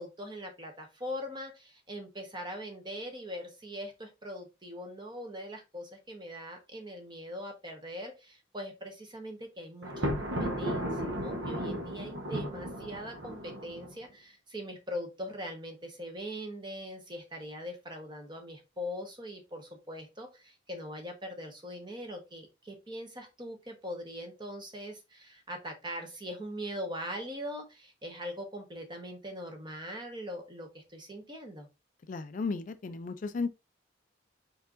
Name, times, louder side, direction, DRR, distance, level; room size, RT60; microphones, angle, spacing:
voice 1, 0.0-31.7, equal, 25° right, 1.1 m, -41 dB
Thunder, 9.8-13.9, equal, 70° right, 1.1 m, -34 dB
voice 2, 32.1-33.5, left 4 dB, 40° left, 0.3 m, -34 dB
4.7 x 4.3 x 2.5 m
head